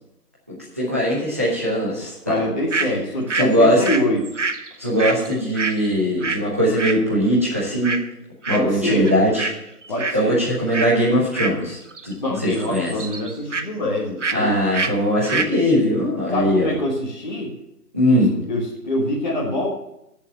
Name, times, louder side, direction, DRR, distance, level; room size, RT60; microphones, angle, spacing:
voice 1, 0.5-2.4 3.3-3.8 4.8-8.0 8.5-9.5 10.1-11.8 12.0-12.1 12.4-12.9 14.3-16.7 17.9-18.3, equal, 10° right, -8 dB, 1.0 m, -20 dB
voice 2, 2.3-4.2 8.5-9.1 9.9-10.4 12.2-14.6 16.3-17.5 18.1-18.2 18.5-19.7, left 1 dB, 30° left, -4 dB, 1.5 m, -24 dB
sound 1, 2.7-2.9 3.3-6.5 6.8-7.0 7.8-8.1 8.4-8.8 9.0-9.6 9.8-10.2 10.7-10.9 11.3-12.1 12.4-13.7 14.2-14.4 14.7-14.9 15.2-15.5, right 4 dB, 50° right, 0.7 m, -26 dB
8.4 x 6.9 x 7.5 m, 0.82 s
figure-of-eight pair, 165°, 47 cm